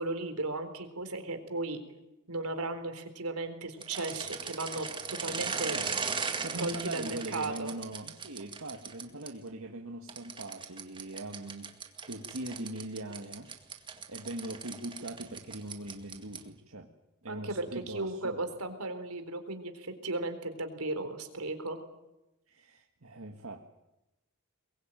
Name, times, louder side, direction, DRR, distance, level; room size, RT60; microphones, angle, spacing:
voice 1, 0.0-1.8 2.3-5.8 6.6-7.7 17.3-21.8, right 2 dB, 85° right, 7 dB, 4.0 m, -36 dB
sound 1, 3.8-9.3 10.1-16.6, right 5 dB, 20° right, 2.0 m, -38 dB
voice 2, 5.7-11.7 12.1-13.5 14.1-16.9 17.2-18.4 22.5-23.6, right 1 dB, 70° right, 2 dB, 1.9 m, -41 dB
22.5 x 22.0 x 9.2 m, 0.93 s
head